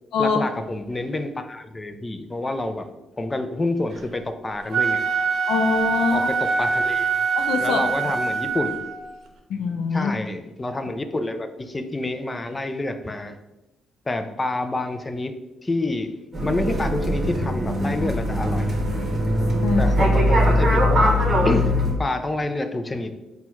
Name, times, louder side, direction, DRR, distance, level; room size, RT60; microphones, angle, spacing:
voice 1, 0.2-2.9 3.2-5.1 6.1-7.1 7.6-8.8 9.9-13.4 14.1-15.3 15.6-16.1 16.4-18.7 19.8-21.1 21.4-21.7 22.0-23.1, left 2 dB, 20° left, 8 dB, 0.4 m, -28 dB
Wind instrument woodwind instrument, 4.6-9.0, right 5 dB, 65° right, 0.7 m, -24 dB
voice 2, 5.5-6.3 7.4-7.9 9.5-10.1 19.6-19.9, left 5 dB, 85° left, 6 dB, 0.4 m, -23 dB
sound 1, 16.3-21.9, equal, 35° right, 1.1 m, -21 dB
4.3 x 2.2 x 4.4 m, 0.99 s
cardioid pair, 90°, 0 cm